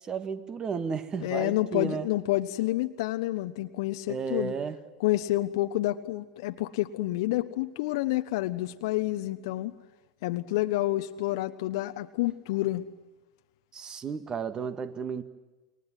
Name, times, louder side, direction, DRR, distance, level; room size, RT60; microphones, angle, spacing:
voice 1, 0.0-2.1 4.1-4.8 13.7-15.2, right 6 dB, 30° right, 11 dB, 2.0 m, -33 dB
voice 2, 1.2-4.5 5.0-9.7 10.2-12.8, left 16 dB, 60° left, 9 dB, 1.1 m, -29 dB
28.0 x 22.5 x 7.7 m, 1.2 s
hypercardioid pair, 85°, 3 cm